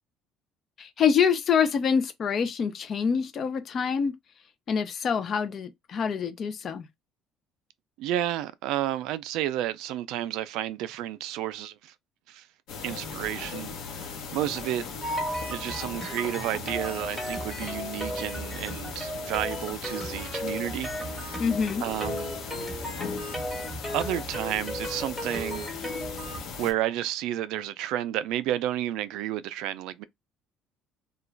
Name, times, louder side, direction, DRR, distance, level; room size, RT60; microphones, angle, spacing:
voice 1, 0.8-4.1 4.7-6.9 21.4-21.8, left 6 dB, 45° left, 0.5 m, -26 dB
voice 2, 8.0-11.9 12.3-12.5 12.8-13.7 14.0-14.9 15.5-21.4 21.8-22.4 23.9-25.7 26.6-30.0, right 13 dB, 80° right, 0.3 m, -31 dB
sound 1, 12.7-26.7, left 5 dB, 75° left, 1.0 m, -39 dB
sound 2, 15.0-26.4, equal, 5° left, 1.2 m, -35 dB
2.4 x 2.2 x 3.1 m
cardioid pair, 125°, 0 cm